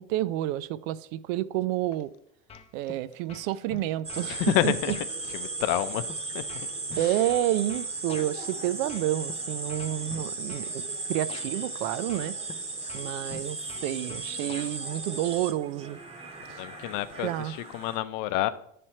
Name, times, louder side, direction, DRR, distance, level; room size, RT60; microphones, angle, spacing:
voice 1, 0.0-2.1 2.7-4.7 7.0-12.4 12.9-13.6 13.8-16.0 17.2-17.5, right 14 dB, 70° right, 0.5 m, -29 dB
sound 1, 2.5-3.0 3.3-4.3 4.9-5.1 5.7-8.3 8.9-9.3 9.7-10.7 11.3-11.5 12.1-12.6 12.9-14.7, left 5 dB, 15° left, 0.3 m, -45 dB
sound 2, 4.0-18.0, right 3 dB, 15° right, 0.8 m, -36 dB
voice 2, 4.3-5.0 5.3-6.1 6.3-6.4 6.9-7.2 16.5-18.5, left 14 dB, 60° left, 0.6 m, -29 dB
9.8 x 3.3 x 4.3 m
supercardioid pair, 115°, 41 cm